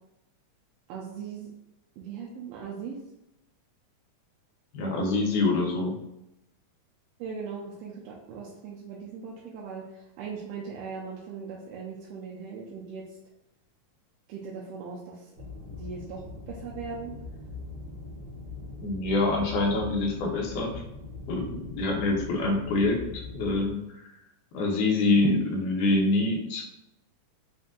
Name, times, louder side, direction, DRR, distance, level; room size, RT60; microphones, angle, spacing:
voice 1, 0.9-1.5 2.0-3.0 7.2-13.2 14.3-15.3 15.7-17.1, right 5 dB, 85° right, -4 dB, 2.2 m, -39 dB
voice 2, 4.7-6.0 18.8-20.7 21.3-23.8 24.5-26.6, left 2 dB, 75° left, 0 dB, 2.2 m, -25 dB
sound 1, 15.3-23.7, left 3 dB, 60° right, 0.8 m, -41 dB
5.8 x 2.6 x 2.5 m, 0.86 s
omnidirectional pair, 3.8 m